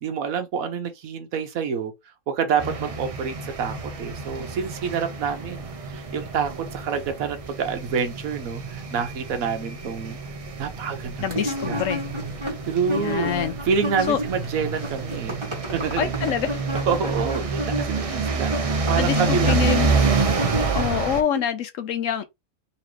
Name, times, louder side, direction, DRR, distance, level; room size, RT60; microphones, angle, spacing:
voice 1, 0.0-1.9 2.3-10.2 10.6-11.3 11.6-11.9 12.7-13.3 13.6-15.3 15.7-16.3 16.9-19.9, right 6 dB, 75° right, 1.3 m, -27 dB
sound 1, 2.6-21.2, right 4 dB, 40° right, 0.5 m, -28 dB
voice 2, 11.2-12.0 12.8-13.5 14.1-14.2 16.0-16.6 18.5-18.6 19.0-20.0 20.7-22.2, left 9 dB, 70° left, 1.0 m, -26 dB
sound 2, 11.3-14.5 14.7-21.4, equal, 20° right, 1.6 m, -31 dB
4.1 x 3.0 x 3.1 m
omnidirectional pair, 1.5 m